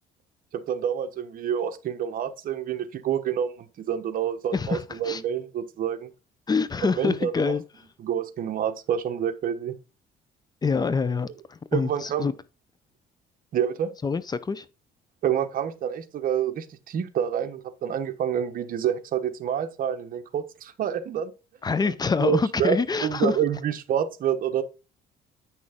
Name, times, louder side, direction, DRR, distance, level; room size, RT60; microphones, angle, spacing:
voice 1, 0.5-6.1 7.0-7.5 8.0-9.7 11.7-12.3 13.5-13.9 15.2-21.3 22.2-24.6, right 9 dB, 55° right, 1.1 m, -28 dB
voice 2, 4.5-5.2 6.5-7.6 10.6-12.3 14.0-14.7 21.6-23.4, left 4 dB, 25° left, 0.6 m, -26 dB
9.0 x 6.2 x 3.6 m
cardioid pair, 110°, 17 cm